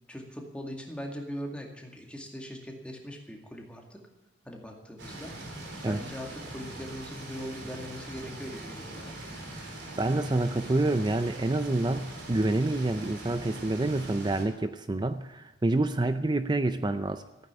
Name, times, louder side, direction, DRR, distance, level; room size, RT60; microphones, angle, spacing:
voice 1, 0.1-4.0 4.5-5.3 5.9-9.1, equal, 5° left, 1 dB, 2.1 m, -40 dB
sound 1, 5.0-14.4, right 1 dB, 70° right, 3.9 m, -42 dB
voice 2, 9.5-17.2, right 2 dB, 25° right, 10 dB, 0.5 m, -28 dB
15.5 x 9.2 x 8.8 m, 1.1 s
head